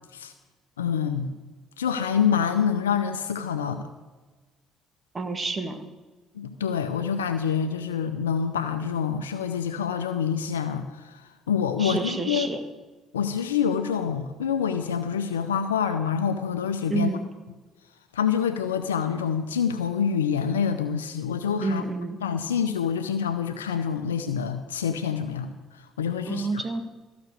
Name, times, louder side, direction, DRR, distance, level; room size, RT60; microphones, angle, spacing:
voice 1, 0.8-1.3 1.8-3.9 6.4-11.2 11.5-12.5 13.1-17.2 18.1-21.8 22.2-25.5 26.0-26.7, left 7 dB, 90° left, 8 dB, 0.5 m, -26 dB
voice 2, 5.1-5.8 11.8-12.6 16.9-17.2 21.6-22.2 26.3-26.8, right 3 dB, 30° right, 8 dB, 1.7 m, -29 dB
14.5 x 6.0 x 8.1 m, 1.2 s
hypercardioid pair, 50°, 0 cm